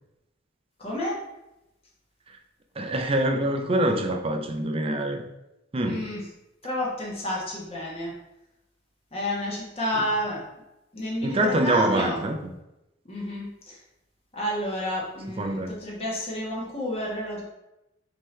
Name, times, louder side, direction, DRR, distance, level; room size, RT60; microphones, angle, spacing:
voice 1, 0.8-1.2 5.8-6.3 6.6-8.1 9.1-10.4 10.9-12.2 13.0-13.8 14.3-17.4, left 1 dB, 30° left, -4 dB, 1.1 m, -30 dB
voice 2, 2.8-5.2 5.7-6.1 11.2-12.4 15.4-15.7, right 1 dB, 30° right, 5 dB, 0.5 m, -25 dB
5.4 x 2.9 x 3.2 m, 0.91 s
head